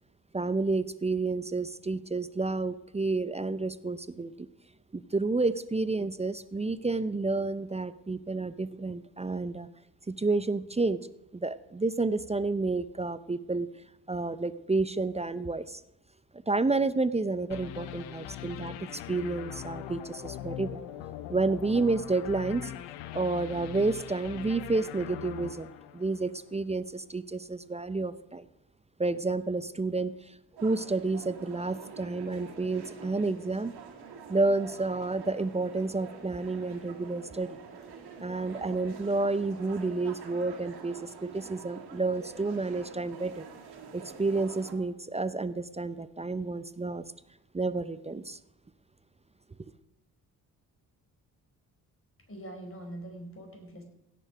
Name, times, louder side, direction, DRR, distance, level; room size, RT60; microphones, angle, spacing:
voice 1, 0.3-4.5 4.9-9.7 10.1-11.0 11.3-13.7 14.1-15.8 16.5-20.8 21.3-22.7 23.1-28.5 29.0-33.7 34.3-37.6 38.2-43.4 43.9-47.0 47.5-48.4, right 3 dB, 15° right, 15 dB, 0.6 m, -30 dB
sound 1, 17.5-26.6, left 11 dB, 80° left, 0.9 m, -41 dB
sound 2, 30.6-44.7, right 5 dB, 60° right, 2.2 m, -46 dB
voice 2, 52.3-53.8, right 1 dB, 30° left, 3 dB, 4.5 m, -43 dB
16.5 x 6.9 x 5.0 m, 0.87 s
hypercardioid pair, 45°, 44 cm